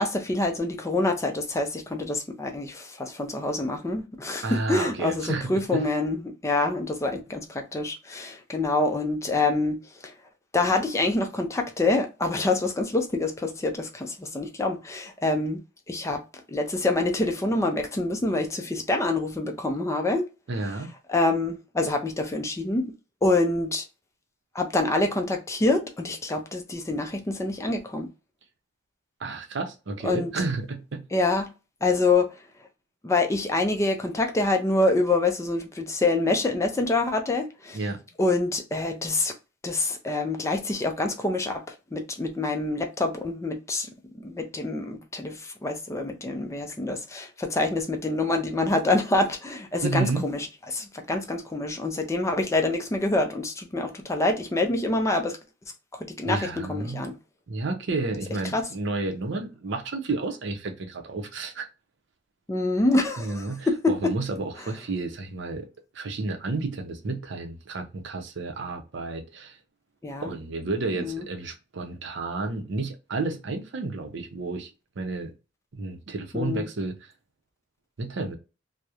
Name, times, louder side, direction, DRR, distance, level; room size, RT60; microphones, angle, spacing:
voice 1, 0.0-10.1 10.5-15.6 15.9-16.2 16.5-20.2 21.1-22.9 23.2-23.8 24.5-28.1 30.0-30.3 31.1-31.5 31.8-32.3 33.0-37.8 38.2-39.3 39.6-43.9 44.2-55.4 55.9-57.2 58.5-58.7 62.5-64.1 70.0-70.3 71.0-71.2 76.3-76.7, left 2 dB, 15° left, 0.4 m, -26 dB
voice 2, 4.4-5.8 20.5-20.9 29.2-31.0 37.7-38.0 49.8-50.2 56.3-57.0 57.5-61.7 63.2-65.7 65.9-69.6 70.2-74.7 75.0-75.3 75.7-77.1 78.0-78.4, right 3 dB, 65° right, 0.6 m, -31 dB
2.9 x 2.0 x 2.3 m
head